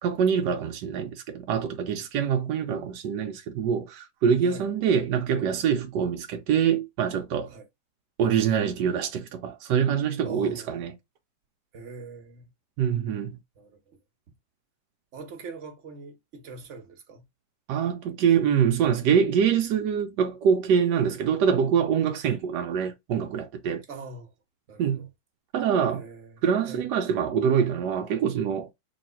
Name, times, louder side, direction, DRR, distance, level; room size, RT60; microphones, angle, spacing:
voice 1, 0.0-7.5 8.2-10.9 12.8-13.4 17.7-23.8 24.8-25.1 25.5-26.0 26.4-28.7, right 7 dB, 70° right, 1.1 m, -25 dB
voice 2, 10.2-10.8 11.7-12.5 13.6-14.0 15.1-17.2 22.2-22.4 23.9-24.3 24.7-25.1 25.9-26.8, right 3 dB, 50° right, 1.0 m, -43 dB
3.1 x 3.0 x 4.2 m
omnidirectional pair, 2.1 m